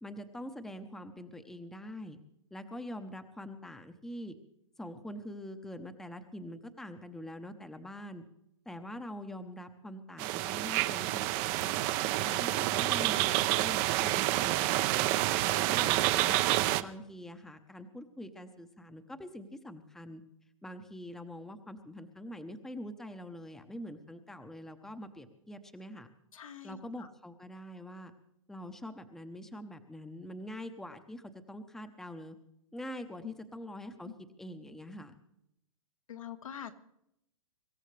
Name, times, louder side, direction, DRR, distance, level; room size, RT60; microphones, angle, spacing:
voice 1, 0.0-2.2 2.5-4.4 4.8-8.2 8.7-11.7 12.2-14.9 15.3-16.4 16.8-20.2 20.6-26.1 26.6-28.1 28.5-32.4 32.7-34.1 34.4-35.1, left 1 dB, 5° left, 8 dB, 0.8 m, -44 dB
sound 1, 10.2-16.8, right 16 dB, 35° right, 0.6 m, -28 dB
voice 2, 26.3-26.8 33.2-33.3 34.1-34.2 36.1-36.7, left 9 dB, 75° left, 6 dB, 1.6 m, -44 dB
24.5 x 14.0 x 3.3 m, 0.80 s
hypercardioid pair, 130°, 17 cm